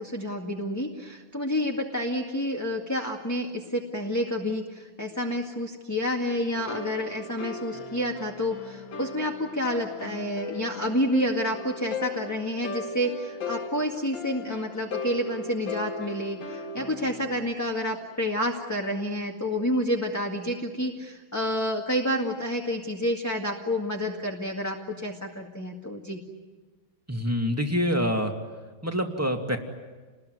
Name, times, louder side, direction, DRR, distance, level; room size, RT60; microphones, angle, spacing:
voice 1, 0.0-26.2, equal, 10° left, 0 dB, 1.8 m, -29 dB
sound 1, 6.5-17.5, left 4 dB, 65° left, 1.9 m, -38 dB
voice 2, 27.1-28.3 28.8-29.6, equal, 5° right, 3 dB, 2.3 m, -26 dB
29.0 x 21.0 x 9.5 m, 1.3 s
omnidirectional pair, 2.3 m